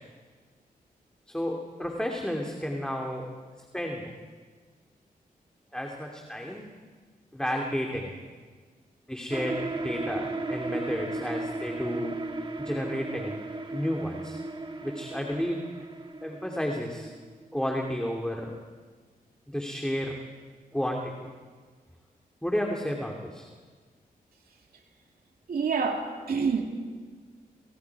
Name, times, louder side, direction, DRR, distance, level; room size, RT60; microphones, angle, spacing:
voice 1, 1.3-3.3 3.7-4.1 5.7-6.7 7.3-8.2 9.1-12.2 12.6-13.4 13.7-14.4 14.8-15.6 16.2-17.1 17.5-18.6 19.5-20.2 20.7-21.3 22.4-23.5, equal, 5° left, 0 dB, 2.8 m, -32 dB
sound 1, 9.3-17.6, right 2 dB, 35° right, 2.1 m, -36 dB
voice 2, 25.5-26.6, right 5 dB, 80° right, 2 dB, 2.5 m, -27 dB
29.5 x 28.5 x 4.8 m, 1.5 s
cardioid pair, 85°, 15 cm